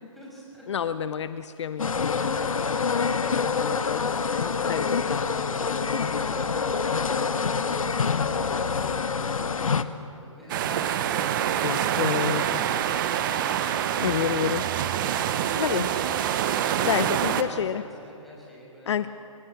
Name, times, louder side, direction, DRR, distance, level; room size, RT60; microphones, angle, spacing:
voice 1, 0.1-0.7 6.0-13.3 14.9-19.1, right 1 dB, ahead, -5 dB, 6.3 m, -46 dB
voice 2, 0.7-6.2 11.6-12.6 13.6-14.7 15.5-15.9 16.8-17.8 18.9-19.1, left 8 dB, 55° left, 13 dB, 0.7 m, -30 dB
sound 1, 1.8-9.8, left 5 dB, 80° left, 1.0 m, -26 dB
sound 2, 10.5-17.4, right 10 dB, 40° right, 1.0 m, -26 dB
23.5 x 18.5 x 7.4 m, 2.7 s
hypercardioid pair, 140°, 17 cm